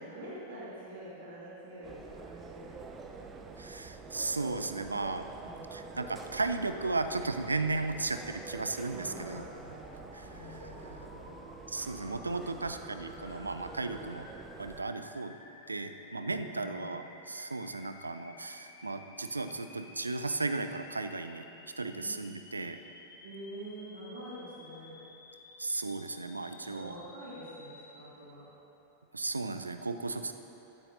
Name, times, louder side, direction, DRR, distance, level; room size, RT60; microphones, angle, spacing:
voice 1, 0.0-3.2 5.4-5.9 8.9-11.3 16.5-16.9 21.9-22.1 23.2-24.9 26.6-28.4, equal, 60° right, -9 dB, 2.6 m, -46 dB
sound 1, 1.8-14.8, right 4 dB, 20° right, 0.7 m, -47 dB
voice 2, 3.6-5.3 5.7-9.4 10.1-10.6 11.7-14.2 14.6-15.4 15.7-21.5 21.8-22.8 25.6-27.0 29.1-30.3, right 3 dB, 80° right, 9 dB, 0.4 m, -35 dB
sound 2, 9.0-28.1, left 2 dB, 70° left, 1.0 m, -54 dB
16.0 x 9.8 x 2.7 m, 3.0 s
figure-of-eight pair, 90°, 0 cm